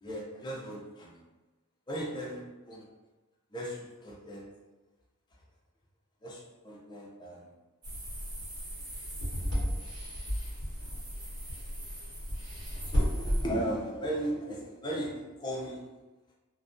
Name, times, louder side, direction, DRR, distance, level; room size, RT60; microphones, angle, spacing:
voice 1, 0.0-1.2 1.9-2.9 3.5-4.5 6.2-7.5 12.8-15.8, right 1 dB, 20° left, -3 dB, 0.5 m, -36 dB
sound 1, 7.8-13.4, equal, 85° right, 1.0 m, -33 dB
2.3 x 2.1 x 2.5 m, 1.2 s
head